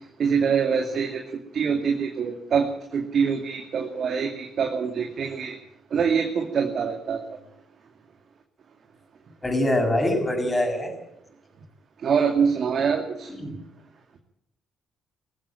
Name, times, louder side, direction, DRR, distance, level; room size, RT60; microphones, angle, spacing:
voice 1, 0.2-1.2 1.5-5.6 5.9-7.2 12.0-13.3, right 6 dB, 55° right, 3 dB, 2.4 m, -24 dB
voice 2, 9.4-11.0 13.4-13.6, left 1 dB, 20° left, 4 dB, 6.9 m, -24 dB
20.0 x 14.5 x 9.0 m, 0.78 s
hypercardioid pair, 45°, 0 cm